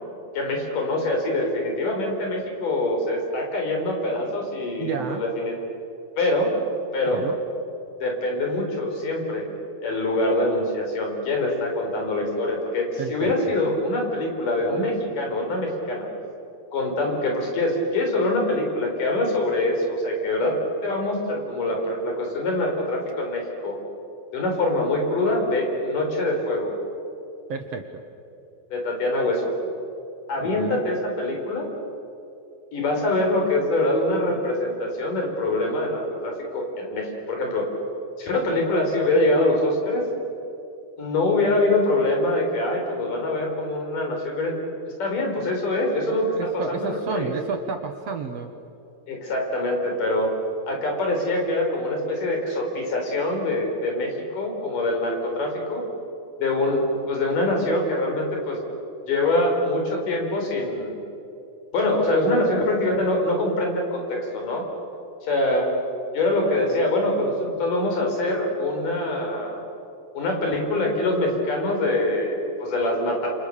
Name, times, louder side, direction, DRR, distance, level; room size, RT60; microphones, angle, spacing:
voice 1, 0.3-5.6 6.2-6.5 6.9-7.2 8.0-9.4 9.8-16.1 16.7-20.5 20.8-23.8 24.3-26.7 28.7-29.5 30.3-31.7 32.7-37.7 38.2-40.0 41.0-44.5 45.0-47.3 49.1-50.3 50.7-55.8 56.4-58.6 59.1-61.0 61.7-64.7 65.2-65.7 66.1-69.6 70.1-73.3, left 1 dB, 70° left, 1 dB, 6.2 m, -24 dB
voice 2, 4.8-5.3 7.1-7.4 13.0-13.3 27.5-27.9 30.4-30.8 46.4-48.5, right 5 dB, 60° right, 6 dB, 2.0 m, -31 dB
29.5 x 28.0 x 6.8 m, 2.8 s
omnidirectional pair, 3.9 m